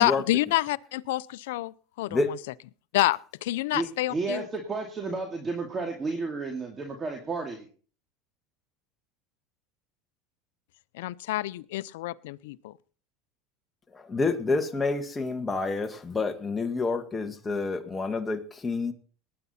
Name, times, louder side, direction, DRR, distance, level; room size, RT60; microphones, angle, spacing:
voice 1, 0.0-2.4 2.9-4.5 10.9-12.7, left 17 dB, 85° left, 17 dB, 0.5 m, -28 dB
voice 2, 3.7-7.7, right 3 dB, 25° right, 3 dB, 2.3 m, -32 dB
voice 3, 13.9-18.9, left 3 dB, 15° left, 6 dB, 1.6 m, -28 dB
19.0 x 9.4 x 4.3 m, 0.42 s
supercardioid pair, 120°, 0 cm